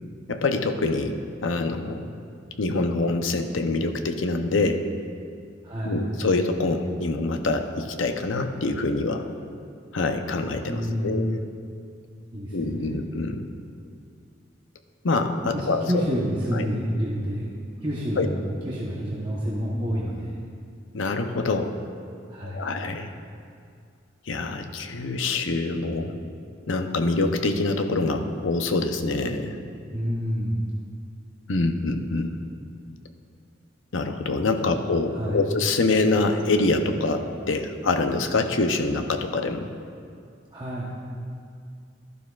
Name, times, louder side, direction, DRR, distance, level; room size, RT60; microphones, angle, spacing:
voice 1, 0.3-1.2 1.4-2.0 2.6-4.9 5.8-9.3 9.9-11.4 12.5-13.5 15.0-16.2 16.5-16.7 18.2-18.3 20.9-21.8 22.4-23.1 24.3-26.2 26.7-29.6 31.5-32.4 33.9-39.7, left 3 dB, 85° left, 7 dB, 0.7 m, -25 dB
voice 2, 5.6-6.1 10.6-11.2 12.3-13.0 15.5-20.4 22.3-22.7 29.9-30.7 34.6-34.7 35.1-35.4 40.5-40.9, equal, 25° right, -6 dB, 1.0 m, -29 dB
12.5 x 11.5 x 2.4 m, 2.3 s
head